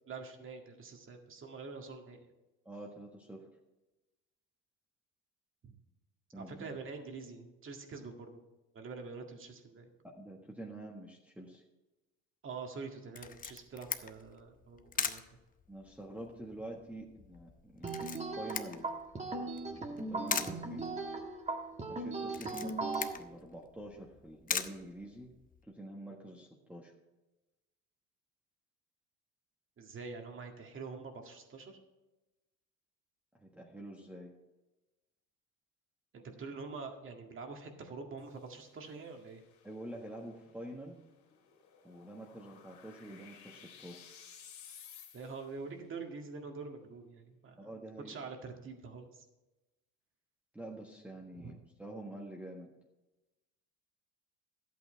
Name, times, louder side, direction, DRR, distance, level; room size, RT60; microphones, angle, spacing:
voice 1, 0.1-2.2 5.6-5.7 6.4-8.4 8.7-9.9 12.4-15.2 29.8-31.8 36.1-39.4 45.1-47.7 48.1-49.2 51.4-51.5, right 4 dB, 40° right, 4 dB, 1.9 m, -45 dB
voice 2, 2.6-3.5 6.3-6.8 10.0-11.6 15.7-18.9 19.7-20.9 21.9-25.3 25.6-26.9 33.4-34.3 39.6-41.0 41.8-44.0 47.6-48.2 50.5-51.5 51.8-52.7, right 1 dB, 5° right, -1 dB, 1.4 m, -47 dB
Camera, 13.1-25.6, left 6 dB, 25° left, 0.7 m, -42 dB
sound 1, 17.8-23.1, right 3 dB, 20° right, 1.4 m, -38 dB
sound 2, 38.2-45.6, left 8 dB, 60° left, 2.5 m, -57 dB
12.5 x 8.4 x 4.5 m, 1.0 s
cardioid pair, 105°, 32 cm